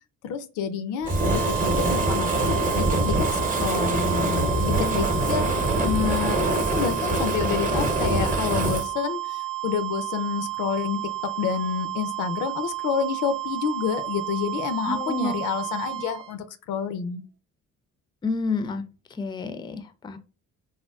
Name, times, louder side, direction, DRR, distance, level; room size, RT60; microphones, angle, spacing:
voice 1, 0.2-5.5 5.8-6.4 6.7-17.2, left 7 dB, 90° left, 11 dB, 0.5 m, -29 dB
Fire, 1.0-8.9, right 1 dB, 25° right, 0.7 m, -24 dB
sound 1, 1.0-16.3, right 16 dB, 70° right, 0.6 m, -32 dB
voice 2, 14.9-15.4 18.2-18.8 19.2-20.2, left 3 dB, 15° left, 10 dB, 0.3 m, -30 dB
3.5 x 2.2 x 2.3 m, 0.34 s
cardioid pair, 90°, 30 cm